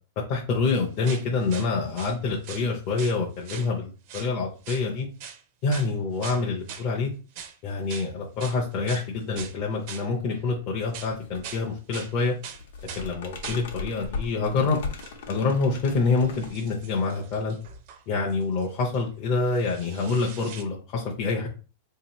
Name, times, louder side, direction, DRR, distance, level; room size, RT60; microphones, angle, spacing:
voice 1, 0.3-5.1 5.6-7.1 7.6-12.3 13.0-14.8 15.3-17.6 18.1-21.5, left 4 dB, 30° left, -3 dB, 0.6 m, -26 dB
sound 1, 0.8-2.2 2.4-3.2 3.4-3.7 4.1-4.3 4.6-4.9 5.2-5.4 5.7-5.9 6.2-6.9 7.4-7.6 7.9-8.1 8.4-9.6 9.9-10.6 10.9-11.7 11.9-12.1 12.4-13.1 13.4-13.7 14.1-14.3 15.0-15.1 15.5-19.0 19.4-20.6, right 8 dB, 35° right, 0.5 m, -42 dB
sound 2, 11.0-11.6 11.9-17.1, left 4 dB, 65° left, 0.8 m, -38 dB
4.0 x 2.8 x 2.9 m, 0.35 s
supercardioid pair, 175°, 0 cm